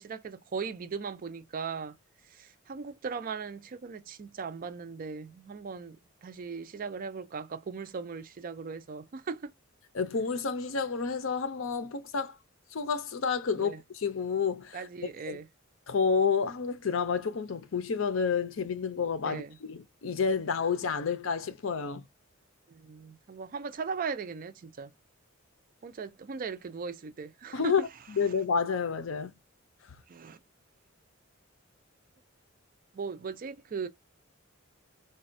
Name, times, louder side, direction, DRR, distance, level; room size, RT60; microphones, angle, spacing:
voice 1, 0.0-2.0 2.3-9.5 13.6-13.8 14.7-15.5 19.2-19.6 20.8-20.9 22.7-24.9 25.8-27.9 30.1-30.4 32.9-33.9, right 5 dB, 45° right, 0.4 m, -38 dB
voice 2, 9.9-12.3 12.7-14.8 15.3-15.4 15.9-22.0 27.5-27.8 28.2-29.3, left 5 dB, 70° left, 0.6 m, -29 dB
4.0 x 2.2 x 2.5 m
head